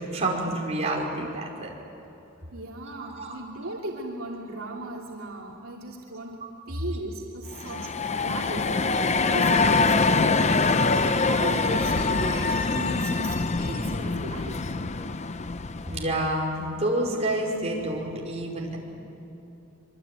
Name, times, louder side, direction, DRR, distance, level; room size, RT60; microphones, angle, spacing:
voice 1, 0.1-1.7 3.0-3.4 15.9-18.8, right 1 dB, 30° right, -2 dB, 5.2 m, -28 dB
voice 2, 2.5-6.4 6.7-14.6, right 2 dB, 70° right, -2 dB, 2.9 m, -37 dB
sound 1, 7.5-16.2, left 3 dB, 30° left, 0.7 m, -24 dB
25.5 x 24.0 x 9.1 m, 2.9 s
head